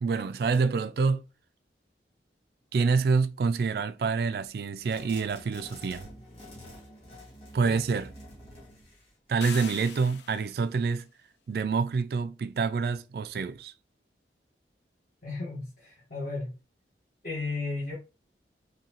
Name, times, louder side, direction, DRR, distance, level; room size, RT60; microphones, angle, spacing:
voice 1, 0.0-1.2 2.7-6.1 7.5-8.1 9.3-11.1 11.5-13.7, right 5 dB, 60° right, 0.3 m, -27 dB
sound 1, 4.8-9.9, left 1 dB, 30° left, 1.7 m, -49 dB
sound 2, 9.4-10.7, left 8 dB, 75° left, 0.4 m, -42 dB
voice 2, 15.2-16.5 17.2-17.9, left 3 dB, 50° left, 1.2 m, -34 dB
3.9 x 2.7 x 2.9 m
head